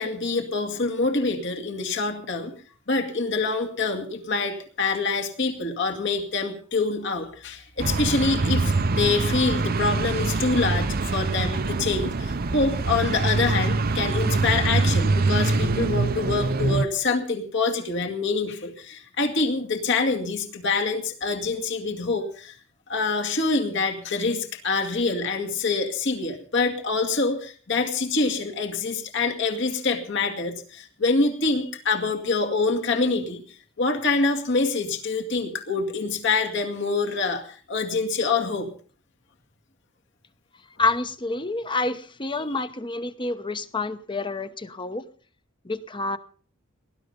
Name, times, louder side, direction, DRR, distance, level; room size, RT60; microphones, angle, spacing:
voice 1, 0.0-2.5 2.9-22.6 22.9-38.7, left 3 dB, 60° left, 3 dB, 2.2 m, -26 dB
sound 1, 7.8-16.9, right 3 dB, 45° right, 0.7 m, -24 dB
voice 2, 40.8-45.0 45.6-46.2, left 3 dB, 25° left, 12 dB, 0.9 m, -28 dB
19.0 x 11.5 x 5.3 m, 0.43 s
head